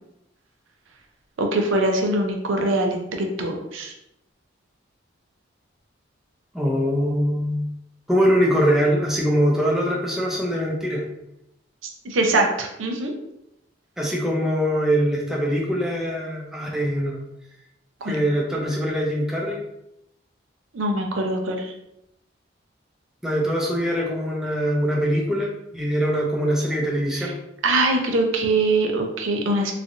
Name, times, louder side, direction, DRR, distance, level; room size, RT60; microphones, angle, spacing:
voice 1, 1.4-3.9 12.0-13.1 18.0-18.2 20.7-21.7 27.2-27.3 27.6-29.7, right 2 dB, 85° right, 3 dB, 0.5 m, -23 dB
voice 2, 6.5-7.7 8.1-11.0 14.0-17.2 18.1-19.6 23.2-27.3, equal, ahead, -3 dB, 0.4 m, -23 dB
3.1 x 2.4 x 2.5 m, 0.82 s
head